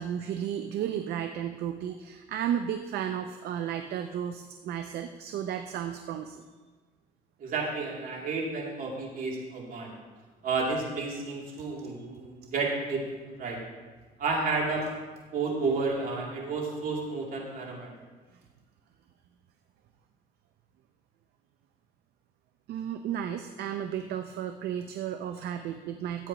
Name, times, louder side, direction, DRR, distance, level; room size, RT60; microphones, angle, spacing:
voice 1, 0.0-6.4 11.8-11.9 22.7-26.3, right 9 dB, 70° right, 7 dB, 0.6 m, -33 dB
voice 2, 7.4-9.9 10.4-13.0 13.4-13.6 14.2-14.8 15.3-17.9, right 3 dB, 55° right, -2 dB, 2.8 m, -31 dB
15.0 x 8.8 x 3.0 m, 1.4 s
cardioid pair, 110°, 17 cm